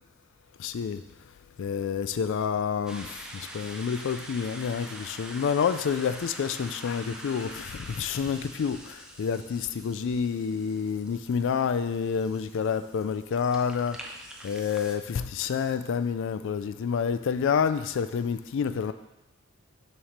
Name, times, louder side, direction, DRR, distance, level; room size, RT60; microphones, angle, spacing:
voice 1, 0.6-1.0 1.6-14.0 14.4-18.9, left 6 dB, 60° left, 12 dB, 0.3 m, -28 dB
sound 1, 2.9-15.0, right 1 dB, 5° right, 0.5 m, -45 dB
7.1 x 3.1 x 5.1 m, 0.94 s
head